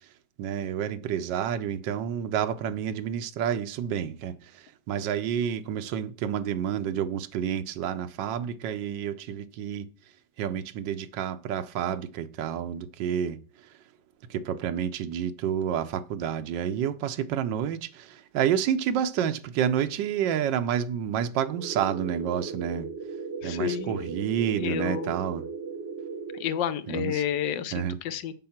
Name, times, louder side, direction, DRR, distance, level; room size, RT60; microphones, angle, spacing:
voice 1, 0.4-4.3 4.9-9.9 10.4-13.4 14.3-22.9 23.4-25.4 26.9-27.2 27.7-28.0, right 9 dB, 85° right, 1.4 m, -29 dB
sound 1, 21.5-26.5, right 5 dB, 45° right, 0.9 m, -37 dB
voice 2, 23.4-24.1 24.5-25.1 26.3-28.3, left 9 dB, 80° left, 1.4 m, -30 dB
7.6 x 6.8 x 5.8 m
omnidirectional pair, 1.9 m